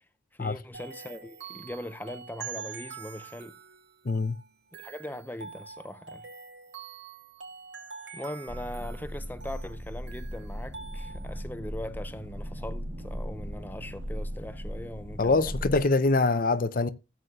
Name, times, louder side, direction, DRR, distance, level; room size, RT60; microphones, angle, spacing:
voice 1, 0.3-3.6 4.7-6.3 8.1-15.7, left 1 dB, 10° left, 0.6 m, -40 dB
sound 1, 0.7-11.4, right 6 dB, 85° right, 3.2 m, -45 dB
voice 2, 4.1-4.4 15.2-16.9, left 3 dB, 50° left, 0.7 m, -24 dB
sound 2, 8.5-15.8, equal, 45° right, 1.5 m, -38 dB
15.0 x 8.3 x 2.3 m
head